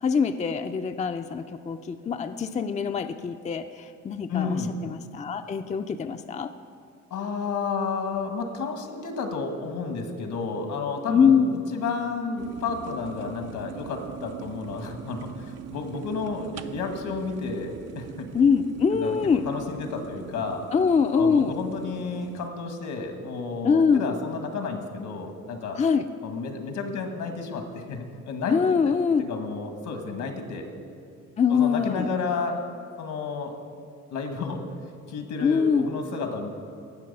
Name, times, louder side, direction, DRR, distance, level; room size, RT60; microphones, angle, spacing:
voice 1, 0.0-6.5 11.1-11.5 18.3-19.4 20.7-21.5 23.6-24.1 25.8-26.1 28.5-29.3 31.4-32.1 35.4-35.9, left 6 dB, 25° left, 8 dB, 0.4 m, -23 dB
voice 2, 4.3-4.8 7.1-18.3 18.9-19.2 19.4-20.7 21.1-25.8 26.2-28.6 28.8-28.9 29.2-30.7 31.5-32.6 33.0-33.5 34.1-34.6 35.1-36.5, left 4 dB, 80° left, 5 dB, 1.6 m, -31 dB
sound 1, 12.4-22.5, right 10 dB, 55° right, 0.5 m, -42 dB
17.5 x 6.3 x 5.4 m, 2.3 s
cardioid pair, 90°, 30 cm